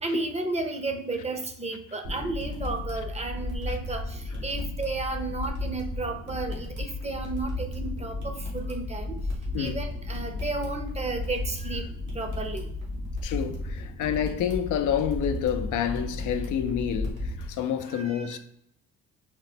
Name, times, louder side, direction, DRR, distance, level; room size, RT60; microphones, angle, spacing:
voice 1, 0.0-9.2 9.6-11.9 12.1-12.7 17.9-18.4, right 3 dB, 20° right, 0.6 m, -33 dB
sound 1, 2.0-17.5, left 2 dB, 85° right, 1.6 m, -34 dB
voice 2, 13.2-18.4, left 8 dB, 80° left, 0.5 m, -28 dB
4.3 x 2.1 x 4.1 m
cardioid pair, 90°, 30 cm